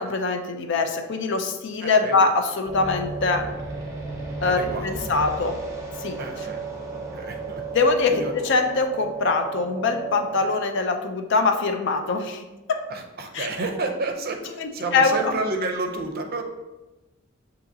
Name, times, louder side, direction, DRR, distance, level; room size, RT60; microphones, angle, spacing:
voice 1, 0.0-3.5 4.4-5.6 6.0-6.2 7.7-12.4 12.7-12.8 13.3-13.5 14.6-15.3, left 4 dB, 60° left, 6 dB, 0.5 m, -23 dB
voice 2, 1.8-2.3 4.4-5.1 6.2-7.6 8.1-8.3 12.9-16.4, right 2 dB, 50° right, 4 dB, 0.5 m, -30 dB
sound 1, 2.6-10.5, right 3 dB, 15° right, 0.8 m, -34 dB
6.7 x 2.8 x 2.7 m, 1.1 s
head